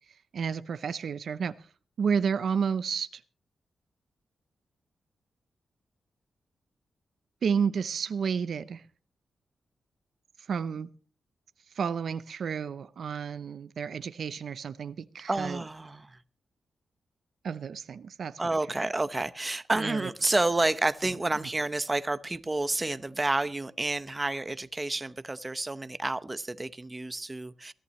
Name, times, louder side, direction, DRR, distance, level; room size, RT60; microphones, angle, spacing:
voice 1, 0.3-1.7 2.0-3.2 7.4-8.8 10.5-10.9 11.7-15.6 17.4-18.4 19.8-20.1, right 6 dB, 65° right, 0.6 m, -31 dB
voice 2, 15.3-16.2 18.4-27.7, right 2 dB, 20° right, 0.8 m, -30 dB
22.0 x 14.0 x 3.2 m
cardioid pair, 105°, 0 cm